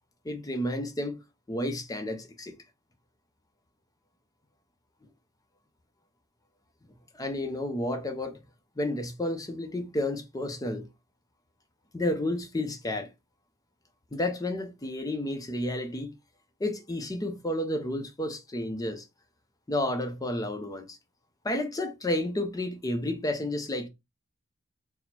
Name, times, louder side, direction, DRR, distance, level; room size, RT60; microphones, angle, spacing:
voice 1, 0.2-1.2 1.5-2.6 7.1-8.4 8.8-10.9 11.9-13.1 14.1-16.1 16.6-19.1 19.7-21.0 21.4-23.9, left 1 dB, 15° left, 0.5 m, -31 dB
4.2 x 2.0 x 4.2 m
head